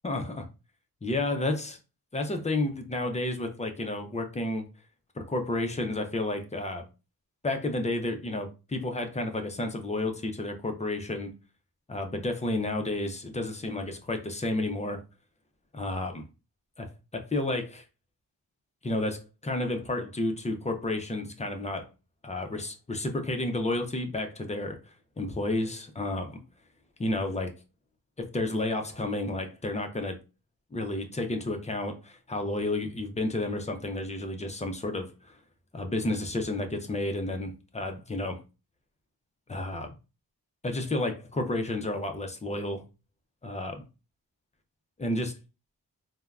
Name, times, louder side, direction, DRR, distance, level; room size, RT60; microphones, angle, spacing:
voice 1, 0.0-0.5 1.0-1.8 2.1-4.7 5.2-6.8 7.4-11.3 11.9-15.0 15.7-16.2 16.8-17.8 18.8-21.9 22.2-24.8 25.2-26.4 27.0-27.5 28.2-30.2 30.7-35.4 35.7-38.4 39.5-39.9 40.6-42.8 43.4-43.8 45.0-45.3, left 2 dB, 20° left, 0.3 m, -31 dB
3.3 x 2.0 x 2.2 m
wide cardioid pair, 160°, 38 cm